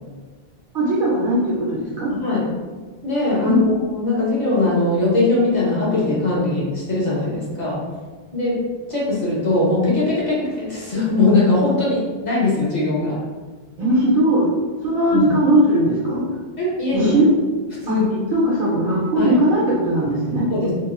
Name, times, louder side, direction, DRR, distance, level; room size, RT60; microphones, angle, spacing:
voice 1, 0.7-2.1 3.4-3.6 13.8-14.5 14.8-16.2 16.9-17.2 17.9-18.0 18.3-20.5, right 1 dB, 60° right, -7 dB, 0.8 m, -19 dB
voice 2, 2.1-2.5 3.0-7.8 8.3-13.2 15.1-15.3 16.6-17.1 17.8-18.3 19.1-19.3 20.5-20.7, left 2 dB, 45° left, -7 dB, 0.9 m, -20 dB
2.9 x 2.2 x 2.3 m, 1.4 s
omnidirectional pair, 1.0 m